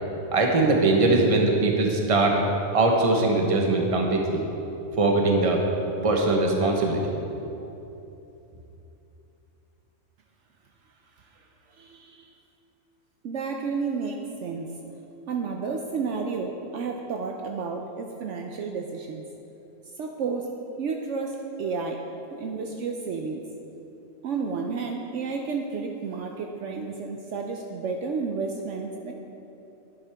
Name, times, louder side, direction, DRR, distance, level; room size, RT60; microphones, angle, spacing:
voice 1, 0.3-2.4 2.7-4.4 5.0-5.6 6.0-7.1, right 2 dB, 30° right, 1 dB, 0.9 m, -21 dB
voice 2, 11.7-12.3 13.2-14.7 15.3-19.2 19.9-20.5 20.8-22.0 22.3-23.4 24.2-29.1, right 4 dB, 70° right, 2 dB, 0.9 m, -31 dB
11.0 x 8.2 x 3.4 m, 2.9 s
omnidirectional pair, 1.4 m